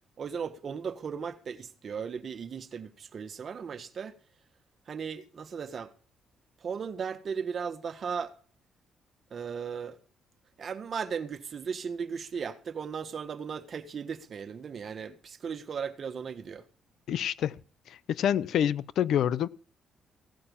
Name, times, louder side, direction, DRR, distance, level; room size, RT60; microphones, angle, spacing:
voice 1, 0.2-4.1 4.9-5.9 6.6-8.3 9.3-10.0 10.6-16.6, right 6 dB, 50° right, 1.6 m, -36 dB
voice 2, 17.1-17.6 17.9-19.5, left 10 dB, 75° left, 0.7 m, -27 dB
16.5 x 8.8 x 7.2 m
cardioid pair, 90°, 0 cm